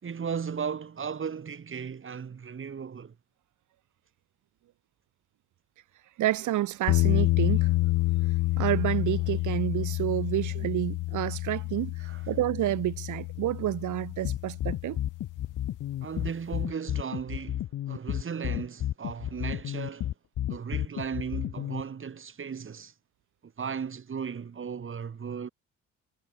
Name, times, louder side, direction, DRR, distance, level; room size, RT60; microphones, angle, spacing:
voice 1, 0.0-3.2 12.0-12.2 16.0-20.1 20.5-22.9 23.4-25.5, right 6 dB, 40° right, 3.7 m, -36 dB
voice 2, 6.2-15.0, right 14 dB, 75° right, 1.5 m, -30 dB
sound 1, 6.9-15.8, left 20 dB, 90° left, 0.5 m, -29 dB
sound 2, 14.2-21.8, left 12 dB, 70° left, 1.6 m, -32 dB
cardioid pair, 90°, 30 cm